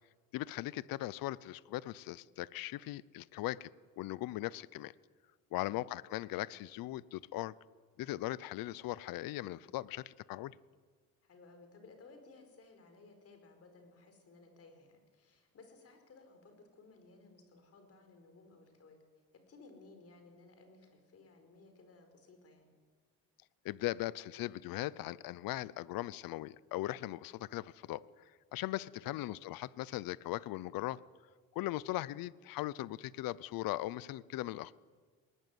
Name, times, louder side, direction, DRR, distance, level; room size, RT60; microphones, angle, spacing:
voice 1, 0.3-3.7 4.0-4.9 5.5-7.5 8.0-10.5 23.6-28.0 28.5-31.0 31.5-34.7, left 16 dB, 75° left, 20 dB, 0.7 m, -39 dB
voice 2, 11.2-19.0 19.5-22.7 28.9-29.2, left 3 dB, 40° left, 6 dB, 4.9 m, -59 dB
20.0 x 19.5 x 9.3 m, 1.5 s
cardioid pair, 145°, 35 cm